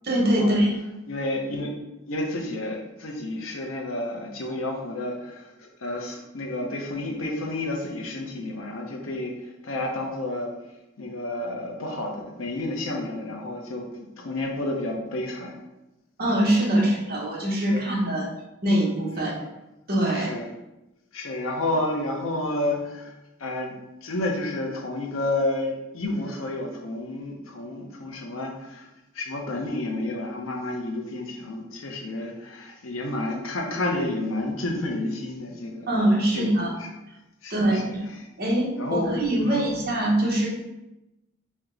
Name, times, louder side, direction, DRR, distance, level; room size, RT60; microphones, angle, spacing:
voice 1, 0.0-0.7 16.2-18.3 18.6-19.4 19.9-20.3 35.9-36.8 37.5-38.0 38.4-40.5, right 1 dB, 50° right, -3 dB, 1.0 m, -23 dB
voice 2, 1.1-1.8 2.1-10.5 11.0-15.5 17.7-17.8 19.2-19.4 20.1-20.5 21.1-23.1 23.4-23.7 24.0-28.9 29.1-35.9 36.3-36.9 37.4-37.9 38.8-39.1 39.4-39.8, left 2 dB, 80° left, 1 dB, 0.7 m, -30 dB
4.5 x 2.1 x 3.7 m, 0.95 s
head